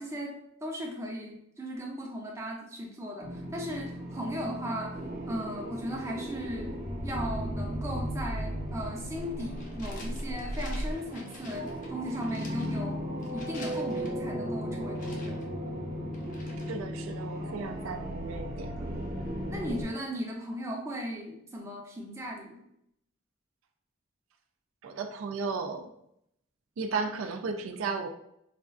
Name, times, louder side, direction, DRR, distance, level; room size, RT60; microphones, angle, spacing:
voice 1, 0.0-15.4 19.5-22.7, equal, 15° right, -1 dB, 0.5 m, -37 dB
sound 1, 3.2-19.9, equal, 50° right, 0.8 m, -36 dB
sound 2, 8.9-14.1 15.0-17.0, left 2 dB, 40° left, 0.6 m, -50 dB
voice 2, 16.7-18.7 24.8-25.9 26.8-28.1, right 4 dB, 80° right, 6 dB, 0.4 m, -34 dB
4.1 x 2.3 x 2.4 m, 0.75 s
head